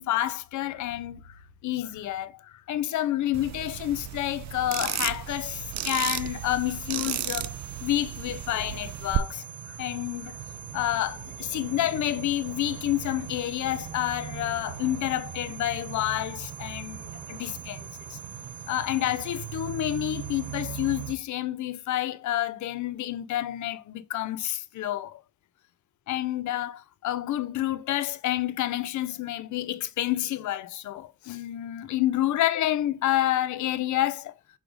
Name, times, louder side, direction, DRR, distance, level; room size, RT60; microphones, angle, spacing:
voice 1, 0.0-7.5 7.8-10.4 10.7-18.2 18.7-25.2 26.1-34.3, left 13 dB, 70° left, 0.7 m, -29 dB
sound 1, 3.3-9.2, right 12 dB, 65° right, 0.6 m, -33 dB
sound 2, 5.3-21.2, right 9 dB, 85° right, 1.1 m, -40 dB
6.2 x 3.4 x 5.1 m
cardioid pair, 90°, 30 cm